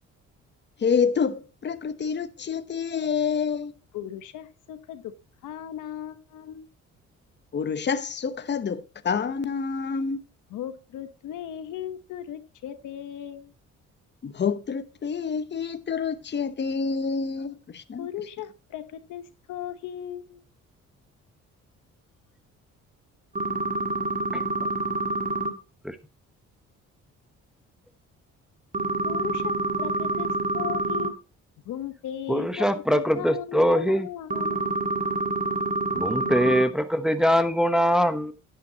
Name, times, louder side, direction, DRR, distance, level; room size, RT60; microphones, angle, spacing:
voice 1, 0.8-3.7 7.5-10.2 14.2-18.1, left 6 dB, 35° left, 0.9 m, -27 dB
voice 2, 3.9-5.1 5.4-6.7 10.5-13.5 18.0-20.4 29.0-31.1 31.6-34.8 36.2-36.6, left 10 dB, 80° left, 1.1 m, -37 dB
sound 1, 23.4-25.5 28.7-31.1 34.3-36.6, right 2 dB, 25° right, 1.7 m, -27 dB
voice 3, 32.3-34.1 35.9-38.3, equal, ahead, 1.0 m, -22 dB
10.5 x 8.9 x 2.8 m
cardioid pair, 90°, 30 cm